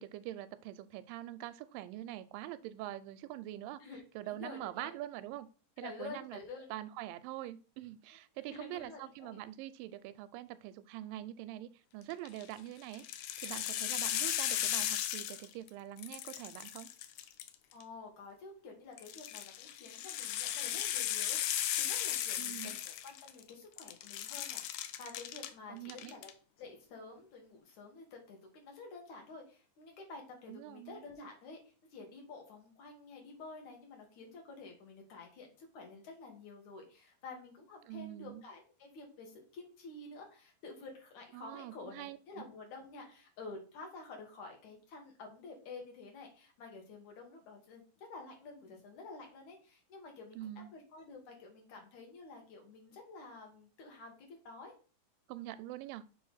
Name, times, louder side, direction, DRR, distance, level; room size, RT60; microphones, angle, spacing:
voice 1, 0.0-3.8 4.2-5.5 5.8-6.4 6.7-13.0 13.4-16.9 22.4-22.8 25.7-26.1 30.5-31.0 37.9-38.4 41.3-42.2 50.4-50.7 55.3-56.0, right 14 dB, 85° right, 13 dB, 2.3 m, -44 dB
voice 2, 4.3-4.9 5.8-6.7 8.4-9.4 17.7-26.3 26.6-31.6 31.9-54.7, left 3 dB, 60° left, 2 dB, 3.0 m, -50 dB
sound 1, 12.1-12.4 12.9-15.7 16.0-17.8 19.0-23.5 23.8-25.5 25.9-26.3, left 11 dB, 80° left, 1.9 m, -36 dB
6.9 x 3.4 x 5.6 m, 0.37 s
omnidirectional pair, 4.0 m